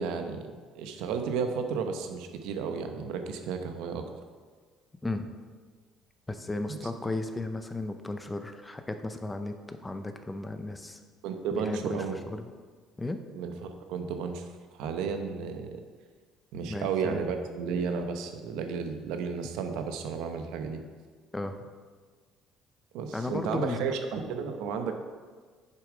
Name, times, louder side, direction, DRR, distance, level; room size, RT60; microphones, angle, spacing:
voice 1, 0.0-4.0 6.7-6.8 11.2-12.2 13.3-14.5 14.7-15.8 16.5-20.8 22.9-24.9, right 5 dB, 80° right, 6 dB, 0.8 m, -33 dB
voice 2, 6.3-11.0 11.5-12.4 13.0-13.2 16.7-17.3 21.3-21.6 23.1-23.8, left 2 dB, 10° left, 8 dB, 0.6 m, -35 dB
7.0 x 6.9 x 4.9 m, 1.5 s
cardioid pair, 130°, 0 cm